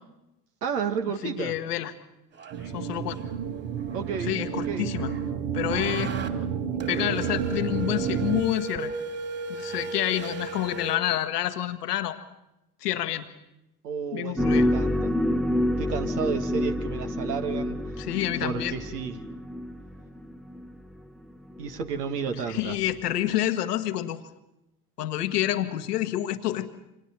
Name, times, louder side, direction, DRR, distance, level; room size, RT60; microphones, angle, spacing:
voice 1, 0.6-1.6 3.9-4.9 13.8-15.1 15.8-18.0 18.4-19.2 21.6-22.8, right 6 dB, 80° right, 6 dB, 1.8 m, -32 dB
voice 2, 1.2-1.9 2.7-3.2 4.3-5.1 5.5-6.1 6.9-8.9 9.5-12.2 12.8-13.3 14.1-14.7 18.0-18.7 22.5-24.2 25.0-26.7, left 13 dB, 80° left, 9 dB, 1.4 m, -28 dB
sound 1, 2.3-2.7 3.2-3.4 3.8-5.3 5.7-6.3 6.8-11.0, right 3 dB, 30° right, 3.0 m, -36 dB
sound 2, 2.5-8.4, right 8 dB, 60° right, 1.6 m, -31 dB
sound 3, 14.4-20.7 21.5-21.7 22.5-22.7 23.3-23.4, left 1 dB, ahead, 0.8 m, -27 dB
28.5 x 25.5 x 4.4 m, 0.90 s
hypercardioid pair, 70°, 46 cm